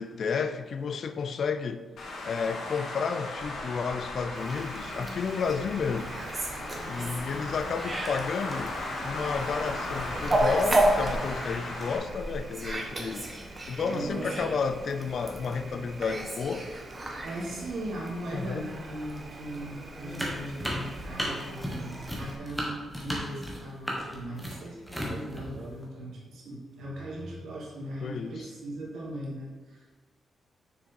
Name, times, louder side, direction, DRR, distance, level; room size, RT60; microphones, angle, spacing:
voice 1, 0.0-1.8 2.2-6.2 6.9-8.7 9.0-13.3 13.7-16.7 18.3-18.7 28.0-28.5, left 5 dB, 55° left, 10 dB, 0.5 m, -31 dB
Traffic noise roadway noise, 2.0-12.0, left 2 dB, 90° left, 1.8 m, -37 dB
Fowl, 4.4-22.4, right 1 dB, 20° right, 1.1 m, -33 dB
voice 2, 13.9-14.5 16.6-16.7 17.2-29.9, right 1 dB, 75° right, -4 dB, 2.5 m, -38 dB
sound 1, 20.1-25.9, equal, ahead, 1.4 m, -34 dB
6.9 x 6.4 x 4.5 m, 1.4 s
wide cardioid pair, 160°, 0 cm